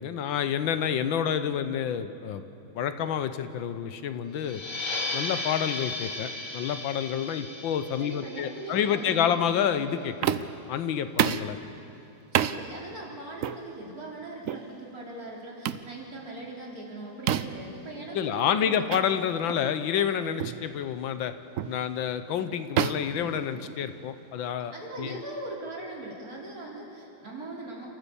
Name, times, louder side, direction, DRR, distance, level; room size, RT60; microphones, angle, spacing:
voice 1, 0.0-2.4 2.7-4.6 5.1-11.6 18.1-21.3 21.7-25.2, left 8 dB, 80° left, 11 dB, 1.6 m, -29 dB
sound 1, 4.4-9.6, left 2 dB, 55° left, 4.3 m, -36 dB
voice 2, 8.0-9.4 12.3-18.8 24.7-27.9, right 2 dB, 45° right, -3 dB, 4.1 m, -40 dB
sound 2, 10.2-10.6 11.2-11.5 12.3-12.6 13.4-13.6 14.4-14.7 15.6-15.9 17.3-17.7 18.9-19.0 19.5-19.6 20.4-20.6 21.6-21.8 22.8-24.0, right 10 dB, 85° right, 0.7 m, -28 dB
29.5 x 14.5 x 7.0 m, 3.0 s
omnidirectional pair, 2.1 m